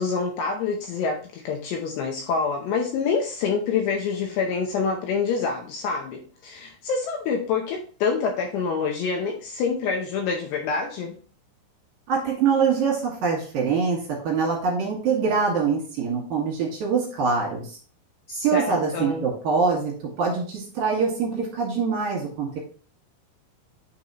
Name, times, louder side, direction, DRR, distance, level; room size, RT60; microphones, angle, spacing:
voice 1, 0.0-11.2 18.3-19.3, left 5 dB, 80° left, 2 dB, 2.6 m, -26 dB
voice 2, 12.1-17.8 18.4-22.6, right 5 dB, 60° right, -3 dB, 2.9 m, -24 dB
9.3 x 4.8 x 2.9 m, 0.42 s
omnidirectional pair, 5.6 m